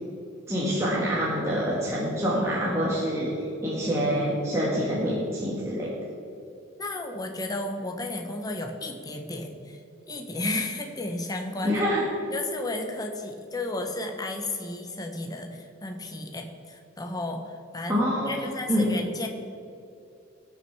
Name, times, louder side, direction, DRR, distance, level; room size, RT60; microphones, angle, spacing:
voice 1, 0.5-5.9 11.6-12.0 17.9-18.9, equal, 15° right, -6 dB, 1.5 m, -26 dB
voice 2, 6.8-9.8 10.1-11.7 12.3-19.3, left 2 dB, 20° left, 3 dB, 1.0 m, -33 dB
17.5 x 6.2 x 4.7 m, 2.6 s
head